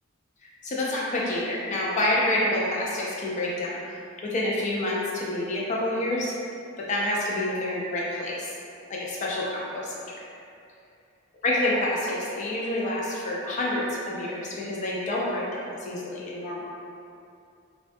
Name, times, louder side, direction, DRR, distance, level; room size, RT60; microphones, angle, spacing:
voice 1, 0.4-4.0 4.2-6.4 6.8-8.6 8.9-10.0 11.4-16.7, left 1 dB, 35° left, -5 dB, 0.3 m, -28 dB
2.5 x 2.2 x 2.5 m, 2.6 s
head